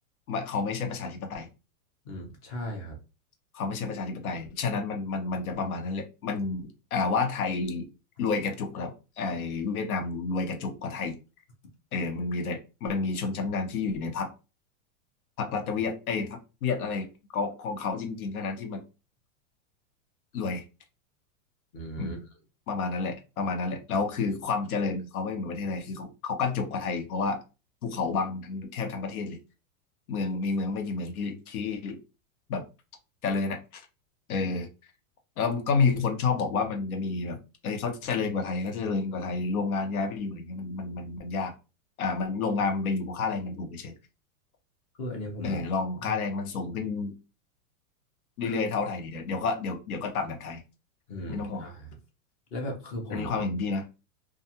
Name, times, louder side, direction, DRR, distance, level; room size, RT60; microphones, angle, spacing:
voice 1, 0.3-1.5 3.5-7.9 8.2-11.2 11.9-14.3 15.4-17.1 17.3-18.8 20.3-20.6 22.0-22.2 22.7-27.4 27.8-29.4 30.1-32.0 32.5-32.6 33.2-33.8 34.3-34.7 35.4-41.5 42.0-43.9 45.4-47.1 48.4-50.6 51.3-51.7 53.1-53.8, left 4 dB, 80° left, 5 dB, 0.9 m, -30 dB
voice 2, 2.0-3.0 21.7-22.2 45.0-45.6 48.4-48.6 51.1-51.9 52.5-53.4, equal, 25° left, 2 dB, 0.6 m, -37 dB
2.4 x 2.3 x 2.7 m, 0.30 s
supercardioid pair, 165°, 43 cm